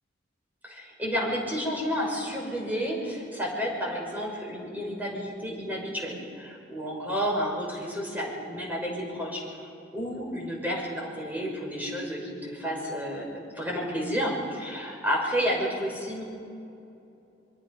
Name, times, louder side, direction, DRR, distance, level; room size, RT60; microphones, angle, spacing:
voice 1, 0.6-16.2, equal, 10° right, -2 dB, 5.9 m, -31 dB
26.0 x 23.5 x 5.5 m, 2.6 s
head